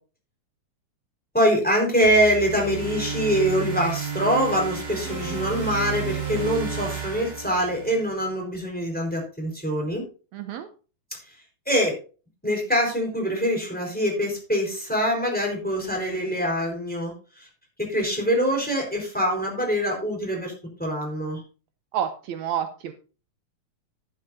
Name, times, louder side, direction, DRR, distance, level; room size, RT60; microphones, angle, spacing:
voice 1, 1.3-10.0 11.7-11.9 12.4-17.5 17.8-20.5 20.8-21.4, equal, 5° left, 0 dB, 4.3 m, -24 dB
sound 1, 2.0-8.2, right 6 dB, 35° right, 4.4 m, -32 dB
voice 2, 10.3-10.7 21.9-22.9, right 9 dB, 75° right, 8 dB, 2.0 m, -29 dB
11.5 x 11.0 x 2.7 m, 0.35 s
omnidirectional pair, 3.4 m